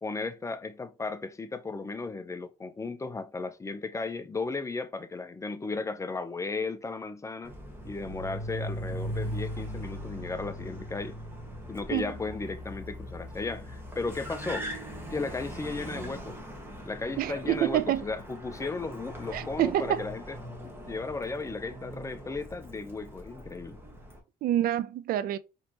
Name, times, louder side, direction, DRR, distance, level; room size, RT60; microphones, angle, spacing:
voice 1, 0.0-7.5 7.8-11.2 11.7-14.7 15.1-16.4 16.9-20.4 20.6-23.8, left 3 dB, 20° left, 0.5 m, -35 dB
Car, 7.4-24.2, equal, 15° right, 1.3 m, -40 dB
voice 2, 17.2-18.0 19.3-20.0 24.4-25.4, right 12 dB, 60° right, 0.4 m, -27 dB
4.5 x 3.1 x 2.8 m
cardioid pair, 110°, 17 cm